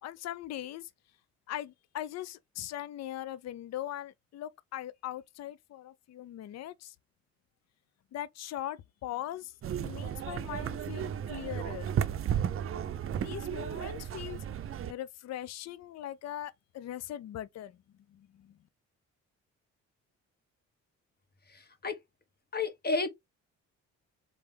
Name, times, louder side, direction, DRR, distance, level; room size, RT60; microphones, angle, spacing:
voice 1, 0.0-0.9 1.5-6.9 8.1-11.9 13.1-14.4 14.9-17.8 18.2-18.5, left 12 dB, 60° left, 0.5 m, -40 dB
sound 1, 9.6-14.9, right 9 dB, 45° right, 0.5 m, -34 dB
voice 2, 21.5-22.0 22.5-23.1, left 3 dB, 30° left, 1.2 m, -31 dB
4.1 x 3.4 x 3.2 m
cardioid pair, 90°, 30 cm